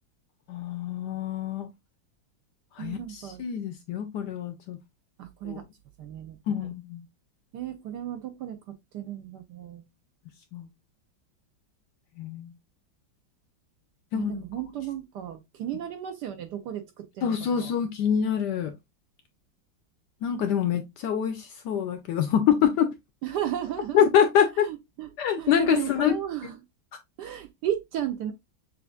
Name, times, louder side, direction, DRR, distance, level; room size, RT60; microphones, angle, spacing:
voice 1, 0.5-1.7 2.8-4.8 5.4-5.6 6.5-7.0 10.5-10.7 12.2-12.5 14.1-14.4 17.2-18.7 20.2-22.9 23.9-24.6 25.2-26.1, left 8 dB, 75° left, 1.0 m, -25 dB
voice 2, 2.8-3.4 5.2-5.6 6.0-6.7 7.5-8.6 8.9-9.8 14.1-17.7 23.2-24.0 24.6-25.1 25.4-26.6 27.2-28.3, right 11 dB, 70° right, 1.0 m, -34 dB
6.6 x 2.5 x 2.3 m
omnidirectional pair, 2.2 m